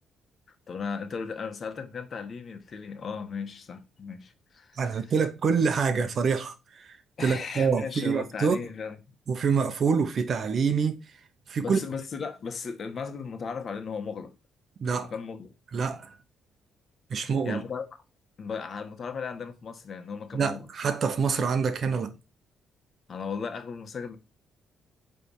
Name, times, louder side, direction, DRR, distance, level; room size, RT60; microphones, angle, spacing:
voice 1, 0.7-5.1 7.2-9.1 11.6-14.3 15.1-15.5 17.2-17.8 18.4-20.7 23.1-24.2, left 5 dB, 50° left, 1.4 m, -36 dB
voice 2, 4.8-8.6 9.3-11.0 11.5-11.8 14.8-15.1 15.7-16.1 17.1-17.6 20.3-22.1, right 5 dB, 55° right, 1.0 m, -26 dB
8.6 x 3.5 x 4.8 m
cardioid pair, 90°, 0 cm